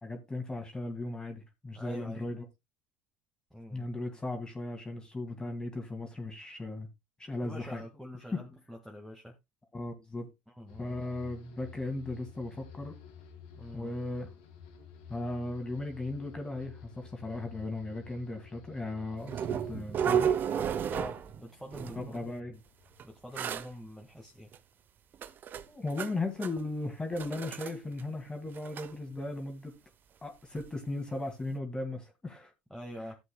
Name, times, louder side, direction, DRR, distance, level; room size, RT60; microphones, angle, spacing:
voice 1, 0.0-2.5 3.7-6.9 7.2-7.8 8.3-8.4 9.7-10.3 10.8-13.0 13.7-14.3 15.1-20.4 21.9-22.5 25.7-29.8 30.2-32.5, left 2 dB, 15° left, 2.2 m, -37 dB
voice 2, 1.7-2.3 3.5-3.9 7.4-9.3 10.5-11.0 13.6-13.9 20.9-22.2 22.5-22.6 23.0-24.5 32.7-33.2, equal, ahead, 1.7 m, -45 dB
deep distant turbine, 10.7-24.0 24.3-24.9, left 8 dB, 80° left, 1.8 m, -52 dB
sound 1, 19.3-21.4 21.7-22.2 23.0-23.1 23.3-23.7 24.5-24.6 25.1-26.1 26.4-26.7 27.1-27.7 28.0-28.1 28.5-28.9 30.6-30.7 31.1-31.2, right 8 dB, 45° right, 0.7 m, -32 dB
14.5 x 8.0 x 2.2 m
hypercardioid pair, 75°, 5 cm